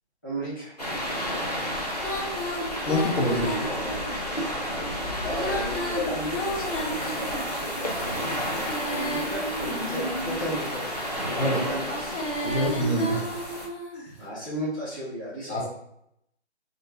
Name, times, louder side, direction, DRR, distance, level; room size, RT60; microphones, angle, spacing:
voice 1, 0.2-0.7 3.3-4.0 5.2-8.1 8.9-12.1 14.2-15.7, equal, 20° left, -13 dB, 1.1 m, -35 dB
sound 1, 0.8-13.7, equal, 35° left, 0.5 m, -31 dB
Female singing, 2.0-4.2 5.3-7.6 8.4-10.5 11.8-14.0, equal, 90° left, 1.2 m, -32 dB
voice 2, 2.9-3.7 11.3-11.6 12.4-13.3 13.9-14.0 15.5-15.7, equal, 65° left, -3 dB, 1.3 m, -26 dB
3.1 x 2.7 x 3.2 m, 0.76 s
hypercardioid pair, 180°, 35 cm